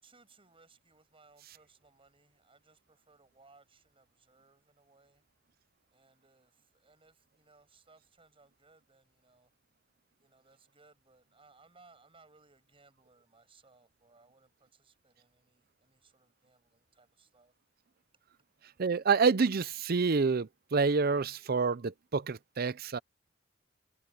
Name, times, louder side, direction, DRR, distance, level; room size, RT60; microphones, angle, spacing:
voice 1, 0.0-5.2 5.9-9.5 10.2-17.5, right 3 dB, 30° right, 6.5 m, -64 dB
voice 2, 18.8-23.0, right 4 dB, 55° right, 0.6 m, -28 dB
head